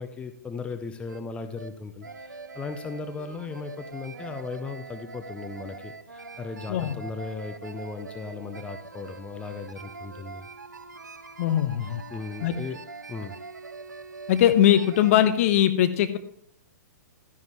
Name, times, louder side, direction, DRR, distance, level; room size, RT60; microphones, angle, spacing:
voice 1, 0.0-10.5 11.8-12.8 13.1-13.4, left 4 dB, 10° left, 8 dB, 0.6 m, -37 dB
sound 1, 0.7-0.8 1.1-1.2 1.6-1.7 2.0-15.3, right 4 dB, 80° right, 0.9 m, -43 dB
voice 2, 11.4-12.0 12.4-12.6 14.3-16.2, left 11 dB, 50° left, 10 dB, 1.0 m, -21 dB
12.0 x 10.5 x 3.0 m, 0.65 s
figure-of-eight pair, 115°, 10 cm